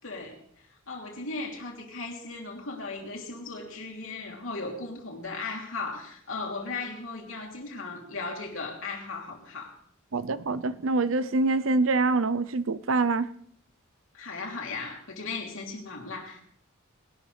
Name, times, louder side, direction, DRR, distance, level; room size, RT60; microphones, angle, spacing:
voice 1, 0.0-9.8 14.1-16.4, left 3 dB, 70° left, 3.2 m, -37 dB
voice 2, 10.1-13.3, right 3 dB, 70° right, 0.7 m, -25 dB
20.0 x 12.0 x 3.4 m
head